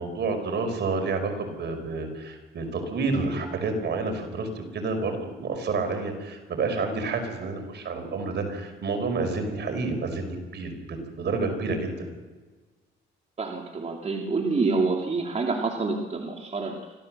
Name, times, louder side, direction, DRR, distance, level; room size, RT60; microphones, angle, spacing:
voice 1, 0.0-12.1, right 3 dB, 60° right, 6 dB, 5.2 m, -29 dB
voice 2, 13.4-16.9, right 3 dB, 35° right, 1 dB, 3.0 m, -27 dB
25.5 x 15.5 x 7.7 m, 1.3 s
cardioid pair, 90°, 20 cm